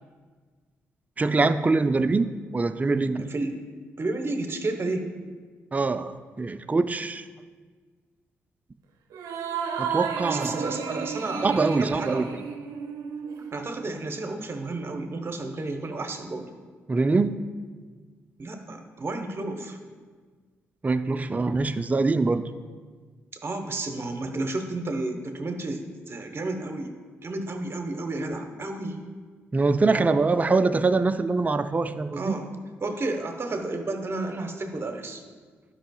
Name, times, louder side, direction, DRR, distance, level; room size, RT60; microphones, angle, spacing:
voice 1, 1.2-3.3 5.7-7.3 9.8-10.7 11.4-12.3 16.9-17.4 20.8-22.4 29.5-32.4, right 3 dB, 25° right, 10 dB, 0.4 m, -24 dB
voice 2, 3.2-3.5 4.0-5.1 10.3-12.3 13.5-16.5 18.4-19.8 23.4-26.9 27.2-29.0 32.2-32.5 32.8-35.2, right 2 dB, 40° right, 5 dB, 1.0 m, -31 dB
sound 1, 9.1-13.9, right 7 dB, 75° right, 0.6 m, -32 dB
11.5 x 5.5 x 2.3 m, 1.5 s
hypercardioid pair, 45°, 6 cm